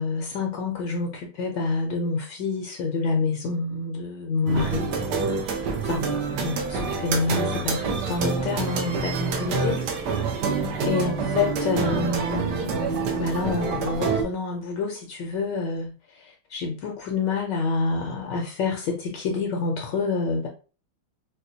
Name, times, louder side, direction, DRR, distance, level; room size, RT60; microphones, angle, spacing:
voice 1, 0.0-4.9 5.8-6.1 6.4-9.9 10.8-15.9 16.5-20.5, left 4 dB, 70° left, 1.2 m, -27 dB
sound 1, 4.5-14.2, right 4 dB, 70° right, 1.1 m, -27 dB
4.2 x 2.2 x 2.6 m
omnidirectional pair, 2.2 m